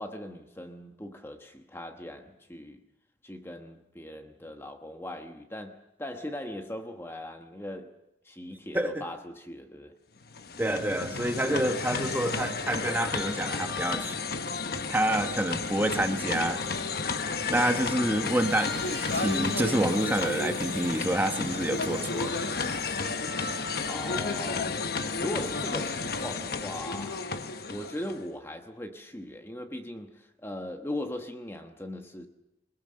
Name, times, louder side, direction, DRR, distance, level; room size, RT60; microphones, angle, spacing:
voice 1, 0.0-2.8 3.2-8.0 8.2-9.9 23.8-24.9 25.2-27.2 27.7-32.3, left 1 dB, 15° left, 1.1 m, -39 dB
sound 1, 10.2-28.3, left 4 dB, 55° left, 1.0 m, -32 dB
voice 2, 10.6-14.2 14.9-16.6 17.5-18.8 19.1-22.4, right 1 dB, 10° right, 1.2 m, -28 dB
sound 2, 18.1-23.0, right 6 dB, 80° right, 3.7 m, -46 dB
21.0 x 21.0 x 7.6 m
head